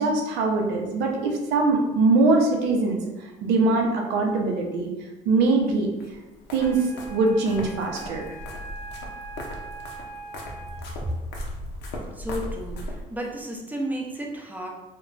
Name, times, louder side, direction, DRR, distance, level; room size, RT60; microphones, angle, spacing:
voice 1, 0.0-3.0 3.4-4.9 5.3-5.9 6.5-8.3, right 3 dB, 85° right, 1 dB, 0.6 m, -22 dB
sound 1, 6.0-13.3, equal, 85° left, 0.6 m, -38 dB
Wind instrument woodwind instrument, 6.5-11.1, right 3 dB, 65° right, 0.9 m, -42 dB
voice 2, 12.1-14.7, equal, 10° right, -1 dB, 0.5 m, -33 dB
2.2 x 2.2 x 3.7 m, 1.1 s
cardioid pair, 110°, 17 cm